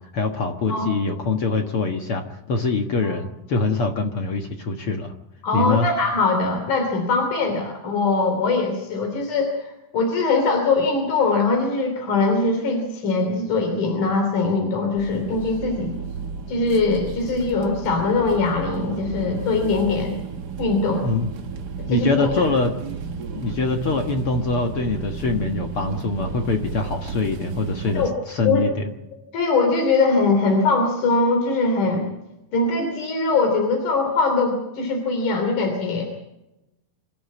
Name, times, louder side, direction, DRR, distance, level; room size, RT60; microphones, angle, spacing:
voice 1, 0.1-2.2 2.5-5.1 5.5-5.9 21.0-21.3 21.9-22.7 23.4-28.8, left 3 dB, 50° left, 4 dB, 2.1 m, -24 dB
voice 2, 5.4-16.0 16.5-20.1 20.6-21.1 21.8-22.5 27.9-28.1 28.4-28.7 29.3-32.1 32.5-36.0, left 3 dB, 75° left, 4 dB, 4.5 m, -22 dB
sound 1, 15.0-28.1, right 5 dB, 50° right, 1.2 m, -33 dB
26.5 x 13.5 x 8.4 m, 0.93 s
omnidirectional pair, 3.6 m